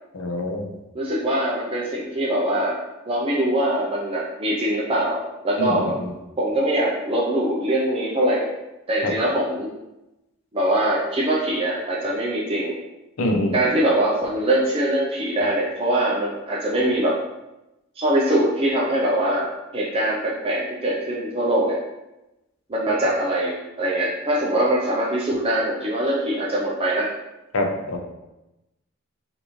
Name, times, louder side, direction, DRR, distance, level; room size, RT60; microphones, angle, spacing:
voice 1, 0.1-0.7 5.6-6.1 9.0-9.1 13.2-13.6 27.5-28.0, left 1 dB, 90° left, 4 dB, 0.6 m, -25 dB
voice 2, 0.9-2.8 3.1-5.9 6.4-8.5 8.9-9.7 10.5-12.8 13.5-17.1 18.0-21.8 22.7-27.1, right 1 dB, 25° right, -5 dB, 0.5 m, -22 dB
5.2 x 2.6 x 3.1 m, 0.97 s
head